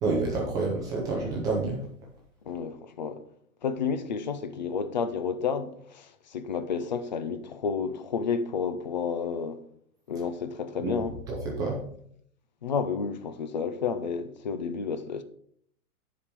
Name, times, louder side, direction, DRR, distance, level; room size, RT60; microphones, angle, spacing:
voice 1, 0.0-1.8 10.8-10.9 11.3-11.8, right 3 dB, 10° right, 0.7 m, -28 dB
voice 2, 2.5-3.2 3.6-9.6 10.1-11.2 12.6-15.2, left 6 dB, 35° left, 0.4 m, -31 dB
10.0 x 5.0 x 5.2 m
hypercardioid pair, 170°, 44 cm